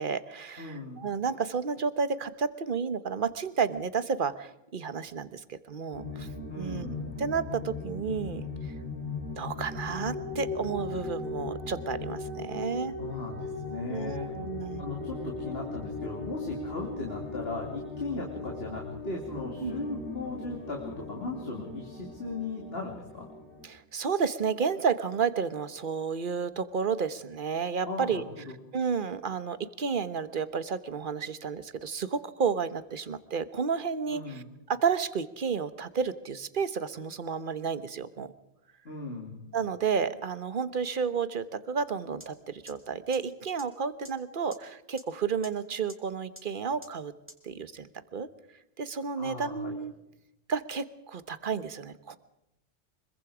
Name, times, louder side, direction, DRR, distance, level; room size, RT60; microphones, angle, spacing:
voice 1, 0.0-6.3 6.6-6.9 7.2-8.5 9.4-12.9 13.9-14.8 19.6-19.7 23.6-28.3 28.7-34.4 34.7-38.3 39.5-47.1 47.4-48.3 48.8-49.9 50.5-52.2, right 6 dB, 50° right, 13 dB, 1.2 m, -31 dB
voice 2, 0.6-1.0 6.5-7.1 13.0-14.5 14.8-23.3 27.9-28.6 34.1-34.5 38.8-39.4 49.2-49.8, left 3 dB, 60° left, 0 dB, 3.0 m, -37 dB
sound 1, 5.9-23.7, left 3 dB, 75° left, 3.8 m, -38 dB
sound 2, 42.2-42.3 42.7-42.8 43.1-43.2 43.6-43.7 44.0-44.1 44.5-44.6 45.0-45.1 45.4-45.5 45.9-46.0 46.4-46.5 46.8-46.9 47.3-47.4, equal, 10° right, 2.2 m, -45 dB
25.0 x 22.5 x 5.0 m, 0.88 s
omnidirectional pair, 1.1 m